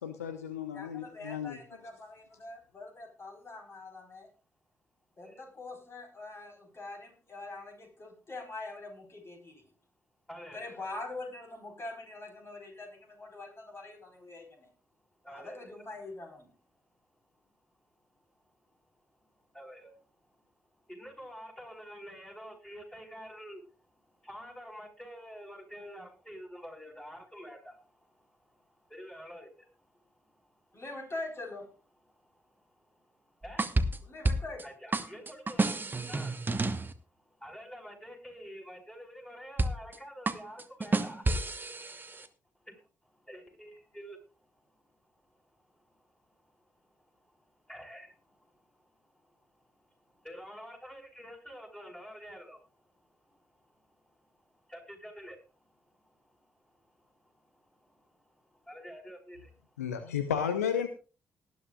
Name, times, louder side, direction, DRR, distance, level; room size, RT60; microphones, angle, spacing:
voice 1, 0.0-1.6 59.8-60.9, left 8 dB, 80° left, 10 dB, 0.8 m, -33 dB
voice 2, 0.7-4.3 5.2-9.5 10.5-14.7 15.3-16.5 30.7-31.7 34.0-34.7, left 2 dB, 30° left, 4 dB, 4.6 m, -44 dB
voice 3, 10.3-10.8 15.2-15.7 17.4-17.5 18.2-18.3 18.6-18.8 19.1-20.4 20.7-30.8 32.1-34.2 34.6-59.9, equal, 10° left, 2 dB, 5.1 m, -50 dB
sound 1, 33.4-34.6 34.9-36.9 39.6-40.0 40.3-42.3, right 2 dB, 25° right, 1.2 m, -30 dB
19.0 x 11.5 x 2.4 m, 0.33 s
figure-of-eight pair, 40°, 8 cm